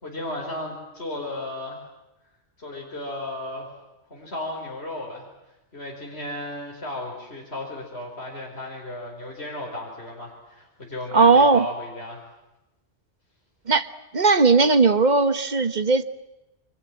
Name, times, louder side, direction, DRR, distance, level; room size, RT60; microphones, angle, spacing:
voice 1, 0.0-1.8 2.6-3.8 4.1-5.3 5.7-12.2, left 1 dB, 60° left, -1 dB, 5.1 m, -34 dB
voice 2, 11.1-11.7 13.7-13.9 14.1-16.0, right 4 dB, 40° right, 11 dB, 1.2 m, -17 dB
29.5 x 25.0 x 7.4 m, 0.98 s
omnidirectional pair, 1.2 m